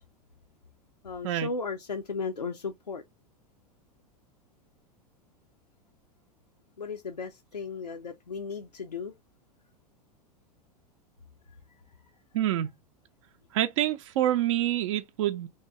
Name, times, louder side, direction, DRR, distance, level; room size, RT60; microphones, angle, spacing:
voice 1, 1.0-3.0 6.8-9.1, left 4 dB, 90° left, 0.5 m, -35 dB
voice 2, 12.3-12.7 13.5-15.5, right 12 dB, 50° right, 0.5 m, -26 dB
3.2 x 2.8 x 3.3 m
figure-of-eight pair, 90°, 20 cm